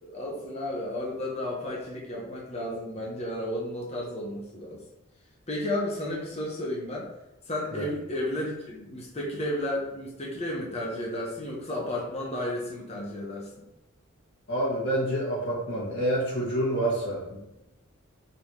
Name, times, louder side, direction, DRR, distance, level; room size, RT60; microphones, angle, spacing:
voice 1, 0.0-4.8 5.5-7.1 7.5-13.6, left 1 dB, 30° left, -3 dB, 1.2 m, -33 dB
voice 2, 14.5-17.6, right 1 dB, 55° left, -8 dB, 1.8 m, -28 dB
5.4 x 3.7 x 4.8 m, 0.90 s
head